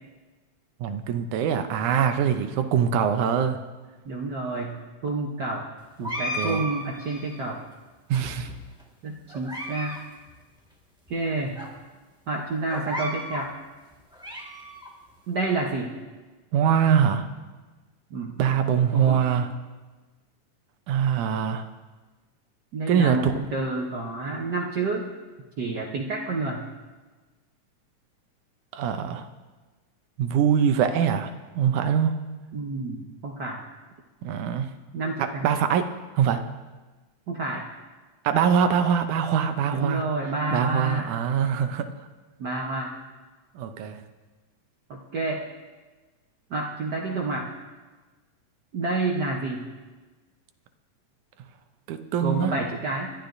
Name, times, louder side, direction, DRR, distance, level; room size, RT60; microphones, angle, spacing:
voice 1, 0.8-3.6 6.3-6.6 8.1-8.5 16.5-17.3 18.4-19.5 20.9-21.6 22.9-23.3 28.7-29.3 30.2-31.3 31.6-32.2 34.2-34.7 35.2-35.9 36.2-36.4 38.2-40.0 40.5-41.9 43.6-44.0 51.9-52.5, right 8 dB, 85° right, 8 dB, 2.3 m, -23 dB
voice 2, 4.0-4.8 5.0-5.6 6.0-7.6 9.0-10.0 11.1-11.6 12.3-13.5 15.3-15.9 18.1-18.3 18.9-19.2 22.7-25.1 25.6-26.6 32.5-33.6 34.9-35.5 37.3-37.6 39.7-41.1 42.4-42.9 44.9-45.4 46.5-47.5 48.7-49.7 52.2-53.1, right 3 dB, 70° right, -1 dB, 1.0 m, -29 dB
sound 1, 6.0-7.5 8.1-8.8 9.3-10.0 10.3-10.4 11.1-11.2 11.6-11.7 12.7-13.5 13.9-14.9, equal, 5° right, 0.5 m, -34 dB
25.5 x 12.0 x 2.6 m, 1.3 s
omnidirectional pair, 3.4 m